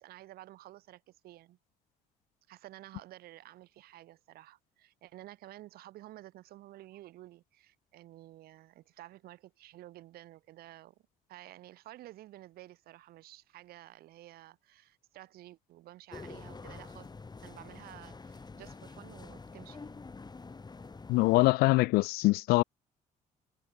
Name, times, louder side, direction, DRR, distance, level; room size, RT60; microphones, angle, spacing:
voice 1, 0.0-1.6 2.5-11.0 11.3-17.1 17.4-20.0, right 15 dB, 80° right, 7.0 m, -52 dB
sound 1, 16.1-21.5, left 4 dB, 25° left, 7.8 m, -47 dB
voice 2, 21.1-22.6, left 21 dB, 90° left, 0.4 m, -24 dB
cardioid pair, 85°, 16 cm